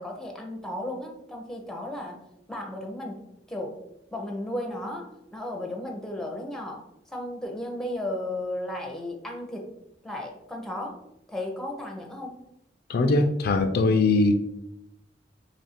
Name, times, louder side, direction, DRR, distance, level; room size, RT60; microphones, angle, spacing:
voice 1, 0.0-2.2 2.5-3.2 3.5-3.8 4.1-9.7 10.0-11.0 11.3-12.3, left 1 dB, 5° left, 1 dB, 0.6 m, -34 dB
voice 2, 12.9-14.4, left 2 dB, 55° left, 6 dB, 0.3 m, -21 dB
3.1 x 2.5 x 4.1 m, 0.83 s
head